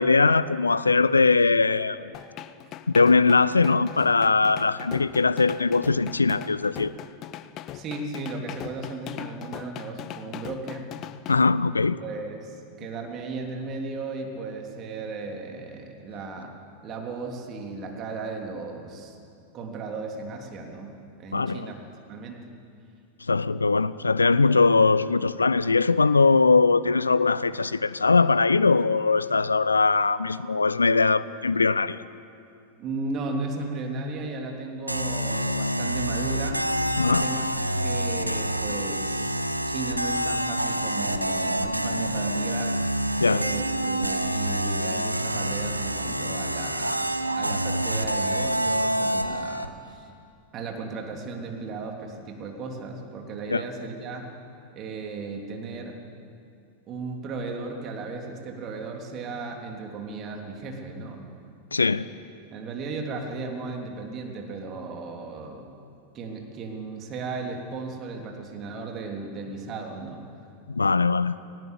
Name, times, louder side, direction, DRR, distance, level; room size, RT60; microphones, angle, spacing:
voice 1, 0.0-2.0 2.9-6.9 11.3-12.0 21.3-21.6 23.3-32.0 37.0-37.3 43.2-43.4 53.5-53.6 61.7-62.1 70.7-71.4, left 4 dB, 80° left, 17 dB, 0.5 m, -21 dB
sound 1, 2.1-11.4, left 12 dB, 35° left, 0.8 m, -40 dB
voice 2, 7.7-10.9 12.0-16.6 16.8-19.2 19.5-21.7 22.1-22.5 32.8-36.7 37.0-37.5 37.8-42.8 43.2-47.1 47.3-50.1 50.5-54.3 54.7-56.0 56.9-61.2 62.5-65.7 66.1-70.3, right 3 dB, 35° right, 2 dB, 3.2 m, -35 dB
sound 2, 34.9-49.7, right 1 dB, 85° right, 0.8 m, -27 dB
19.0 x 18.5 x 8.3 m, 2.5 s
figure-of-eight pair, 90°, 0 cm